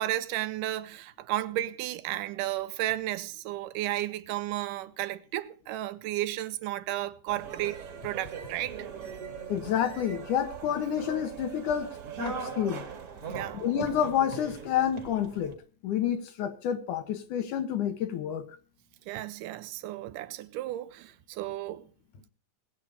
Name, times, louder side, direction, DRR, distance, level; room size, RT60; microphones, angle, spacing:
voice 1, 0.0-8.9 13.3-13.6 19.1-21.9, right 14 dB, 85° right, 2.3 m, -33 dB
sound 1, 7.3-15.5, right 6 dB, 50° right, 2.6 m, -40 dB
voice 2, 9.5-11.9 12.2-12.8 13.5-15.6 15.8-18.5, left 9 dB, 75° left, 2.7 m, -29 dB
18.5 x 8.6 x 4.8 m
omnidirectional pair, 3.7 m